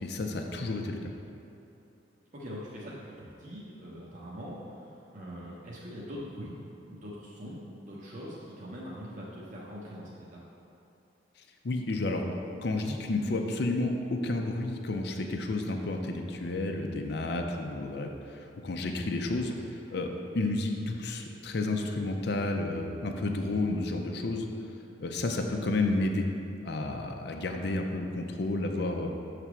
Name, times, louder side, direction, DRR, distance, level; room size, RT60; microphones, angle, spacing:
voice 1, 0.0-1.1 11.6-12.2 12.6-24.5 25.0-26.3 26.6-29.1, left 2 dB, 60° left, 3 dB, 0.5 m, -31 dB
voice 2, 2.3-6.6 6.9-10.4 23.4-23.7 28.7-29.0, equal, 45° right, -6 dB, 0.9 m, -43 dB
6.9 x 3.3 x 6.1 m, 2.8 s
head